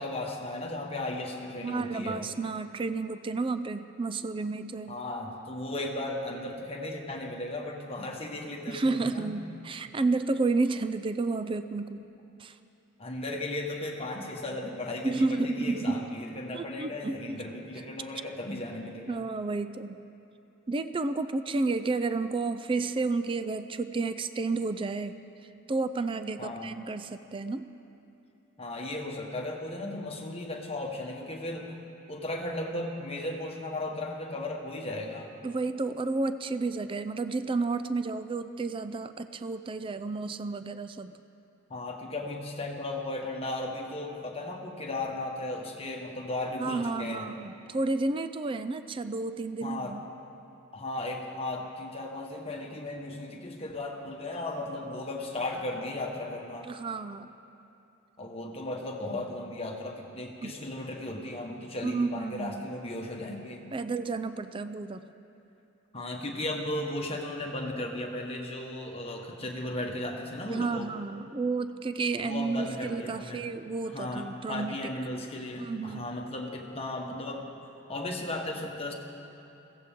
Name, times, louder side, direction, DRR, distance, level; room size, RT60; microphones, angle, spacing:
voice 1, 0.0-2.3 4.9-9.3 13.0-19.2 26.4-26.8 28.6-31.8 32.1-35.3 41.7-47.3 49.6-50.0 50.7-56.7 58.2-63.7 65.9-70.9 72.2-73.5 73.9-77.5 77.9-78.9, left 1 dB, 30° left, 1 dB, 1.4 m, -36 dB
voice 2, 1.6-5.0 8.7-12.0 12.4-12.6 15.0-16.1 16.5-17.4 19.1-20.0 20.7-25.1 25.7-27.7 35.4-41.2 46.6-50.0 56.6-57.3 60.4-60.5 61.8-62.7 63.7-65.0 70.5-74.8 75.6-76.1, right 3 dB, 25° right, 11 dB, 0.4 m, -31 dB
21.5 x 16.0 x 3.7 m, 2.8 s
head